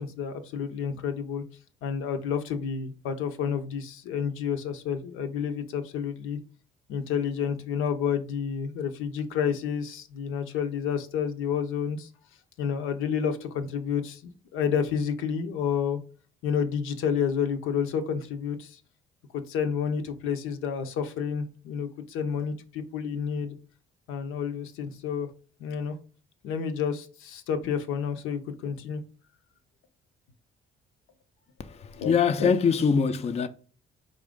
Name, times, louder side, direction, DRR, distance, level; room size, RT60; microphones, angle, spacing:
voice 1, 0.0-1.4 1.8-6.4 6.9-12.1 12.6-16.0 16.4-18.8 19.3-23.6 24.1-25.3 25.6-25.9 26.4-29.0 32.0-32.1 32.4-32.5, left 7 dB, 80° left, 0.6 m, -30 dB
voice 2, 31.6-33.5, left 6 dB, 30° left, 0.4 m, -24 dB
4.3 x 2.5 x 3.6 m
supercardioid pair, 75°, 21 cm